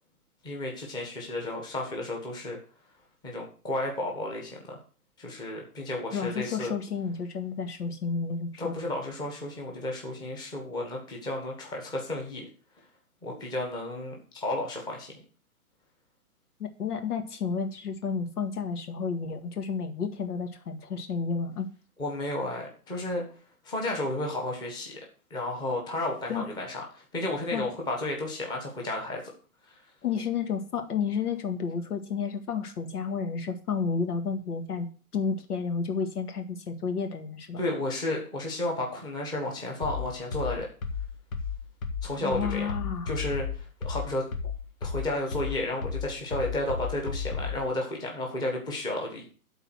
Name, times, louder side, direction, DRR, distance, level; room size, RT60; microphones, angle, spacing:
voice 1, 0.4-2.6 3.2-4.8 5.2-6.7 8.6-12.5 13.2-15.1 22.0-23.2 23.6-25.0 25.3-29.2 29.6-29.8 37.6-40.7 42.0-42.7 43.1-44.2 44.8-49.3, left 1 dB, 10° left, 0 dB, 1.3 m, -32 dB
voice 2, 6.1-8.7 16.6-21.7 26.3-26.5 27.5-27.6 30.0-34.9 35.1-37.6 42.2-43.1, left 5 dB, 75° left, 6 dB, 1.9 m, -31 dB
sound 1, 39.8-47.7, left 5 dB, 60° left, 1.8 m, -33 dB
12.0 x 4.1 x 6.1 m, 0.40 s
hypercardioid pair, 160°, 45 cm